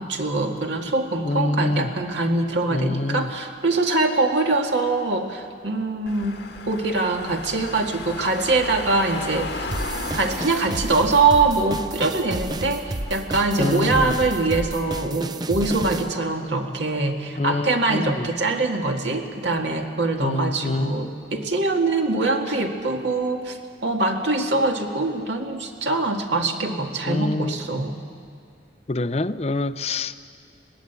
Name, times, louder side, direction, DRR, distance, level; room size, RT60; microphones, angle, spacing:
voice 1, 0.0-6.4 6.7-9.7 10.1-28.0, right 3 dB, 75° right, 3 dB, 2.1 m, -23 dB
voice 2, 1.2-1.9 2.7-3.3 13.6-14.1 17.4-18.3 20.2-21.1 27.1-27.5 28.9-30.2, left 2 dB, 35° left, 12 dB, 0.5 m, -25 dB
Car / Engine, 6.1-14.3, left 2 dB, 65° left, 2.0 m, -36 dB
sound 1, 9.7-16.1, right 2 dB, 20° right, 0.5 m, -31 dB
21.5 x 18.0 x 8.3 m, 2.2 s
head